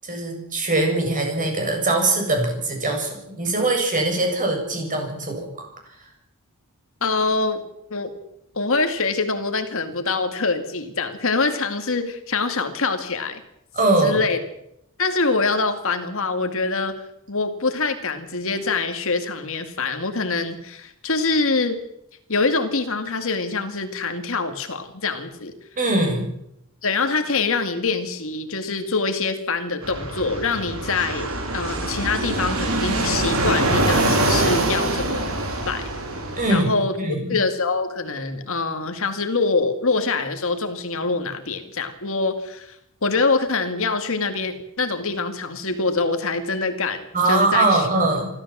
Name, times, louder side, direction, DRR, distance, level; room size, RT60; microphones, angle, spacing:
voice 1, 0.0-3.1 3.4-5.7 13.7-14.2 25.8-26.2 36.4-36.7 37.0-37.4 47.1-48.3, right 2 dB, 35° right, 2 dB, 7.5 m, -21 dB
voice 2, 7.0-7.6 7.9-8.1 8.5-13.4 14.0-14.4 15.0-21.8 22.3-25.5 26.8-35.3 35.7-35.9 36.5-37.0 37.3-42.8 43.0-47.9, left 3 dB, 65° left, 7 dB, 2.3 m, -24 dB
Fixed-wing aircraft airplane, 29.8-36.6, right 2 dB, 70° right, 4.7 m, -24 dB
26.0 x 14.0 x 7.5 m, 0.80 s
head